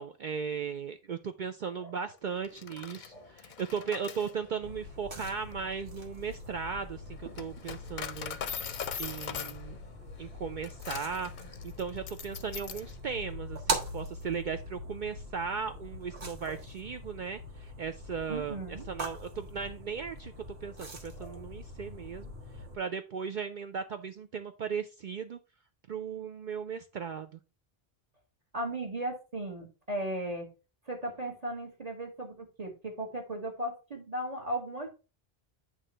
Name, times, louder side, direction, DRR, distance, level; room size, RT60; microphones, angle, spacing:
voice 1, 0.0-8.4 9.0-9.8 10.2-20.3 20.6-22.3 22.6-25.4 25.9-27.4, right 6 dB, 55° right, 7 dB, 0.6 m, -37 dB
Coin (dropping), 2.4-13.0, left 7 dB, 55° left, 0.7 m, -42 dB
sound 1, 4.6-22.7, right 1 dB, 85° right, 1.8 m, -42 dB
voice 2, 18.3-18.9 21.2-21.4 28.5-30.5 30.9-34.9, right 1 dB, 40° right, 2 dB, 1.8 m, -36 dB
8.9 x 3.1 x 5.4 m, 0.31 s
omnidirectional pair, 1.1 m